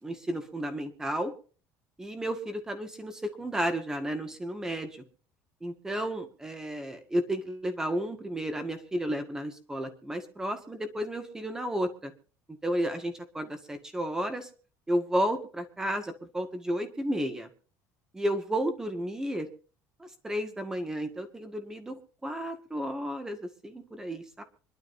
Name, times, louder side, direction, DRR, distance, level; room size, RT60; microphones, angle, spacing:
voice 1, 0.0-1.3 2.0-4.9 5.6-12.1 12.5-14.5 14.9-17.5 18.1-19.5 20.0-24.4, equal, 10° right, 7 dB, 1.8 m, -32 dB
25.5 x 12.0 x 2.7 m, 0.38 s
cardioid pair, 170°, 7 cm